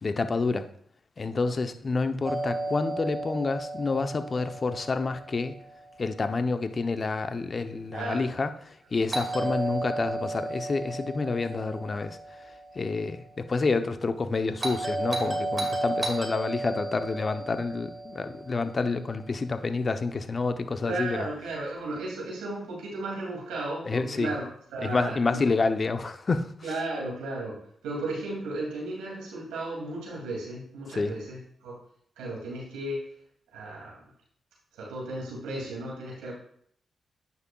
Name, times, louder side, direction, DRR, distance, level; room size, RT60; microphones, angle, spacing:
voice 1, 0.0-0.7 1.2-5.6 6.0-21.3 23.8-24.3 24.8-26.7 30.9-31.2, left 3 dB, 45° left, 9 dB, 0.7 m, -29 dB
Doorbell, 2.2-6.2 9.1-13.3 14.6-19.0, right 2 dB, 40° right, 2.1 m, -34 dB
voice 2, 7.9-8.3 9.3-9.5 20.8-24.4 24.7-25.5 26.6-31.8 32.2-33.1 33.5-34.0 34.8-36.3, right 2 dB, 85° right, -3 dB, 2.5 m, -35 dB
9.5 x 6.0 x 2.3 m, 0.63 s
hypercardioid pair, 40°, 0 cm